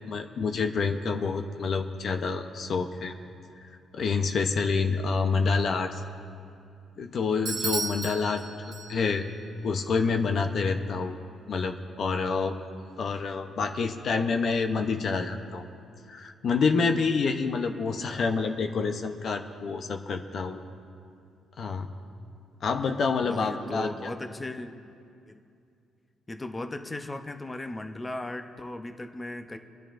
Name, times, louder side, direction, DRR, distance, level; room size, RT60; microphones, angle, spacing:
voice 1, 0.0-3.2 3.9-6.0 7.0-8.4 8.9-9.3 9.6-11.2 11.5-12.5 13.0-15.6 16.1-20.6 21.6-21.9 22.6-24.1, left 4 dB, 60° left, 5 dB, 0.7 m, -27 dB
Bell / Doorbell, 7.5-9.3, right 4 dB, 55° right, 1.5 m, -34 dB
voice 2, 23.2-24.8 25.3-25.4 26.3-29.6, left 2 dB, 20° left, 6 dB, 0.7 m, -37 dB
29.5 x 10.5 x 2.5 m, 2.5 s
cardioid pair, 90°, 0 cm